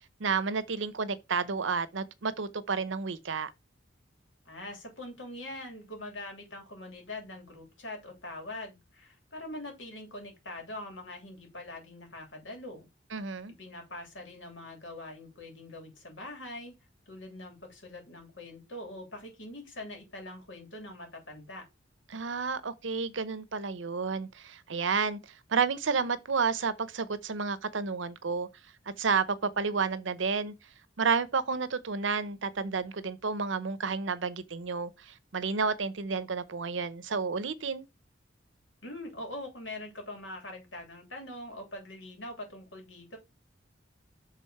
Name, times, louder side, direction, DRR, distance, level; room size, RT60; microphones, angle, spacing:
voice 1, 0.2-3.5 13.1-13.5 22.1-25.2 25.5-28.5 29.0-30.5 31.0-37.9, right 5 dB, 70° right, 0.7 m, -31 dB
voice 2, 4.4-12.9 13.6-16.7 17.1-21.6 38.8-43.2, left 1 dB, 75° left, 3.2 m, -43 dB
6.5 x 3.8 x 5.6 m
head